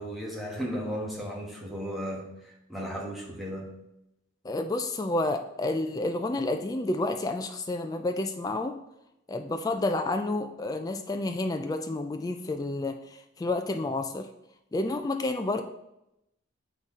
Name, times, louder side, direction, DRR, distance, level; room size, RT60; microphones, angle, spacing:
voice 1, 0.0-2.3 2.7-3.7, equal, ahead, -3 dB, 1.2 m, -35 dB
voice 2, 4.4-8.8 9.3-14.3 14.7-15.6, left 2 dB, 20° left, 6 dB, 0.3 m, -30 dB
8.1 x 4.0 x 3.6 m, 0.85 s
head